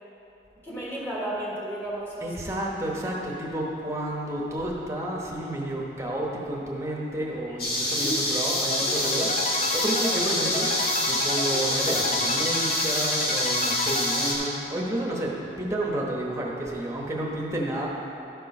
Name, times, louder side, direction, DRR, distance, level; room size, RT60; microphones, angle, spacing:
voice 1, 0.6-2.3 7.5-7.6 8.0-8.2, right 1 dB, 15° left, -7 dB, 1.5 m, -33 dB
voice 2, 2.2-10.7 11.1-17.9, right 1 dB, 15° right, -3 dB, 1.0 m, -31 dB
sound 1, 7.6-14.4, left 1 dB, 55° left, 1.8 m, -26 dB
sound 2, 8.7-15.0, left 2 dB, 40° left, 0.5 m, -32 dB
12.0 x 4.5 x 5.3 m, 2.8 s
head